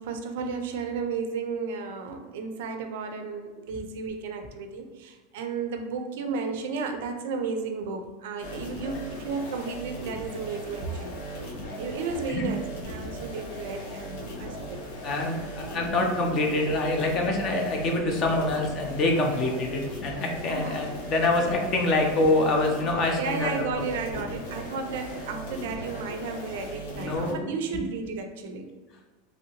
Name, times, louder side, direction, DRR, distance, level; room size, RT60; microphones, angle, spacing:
voice 1, 0.0-11.3 11.8-14.8 19.3-19.4 20.5-20.8 23.1-28.7, right 4 dB, 65° right, 5 dB, 0.4 m, -33 dB
sound 1, 8.4-27.3, equal, 90° left, 0.9 m, -38 dB
voice 2, 15.0-23.7 27.0-27.5, left 2 dB, 25° left, 2 dB, 0.4 m, -25 dB
3.0 x 2.7 x 2.8 m, 1.3 s
supercardioid pair, 175°, 0 cm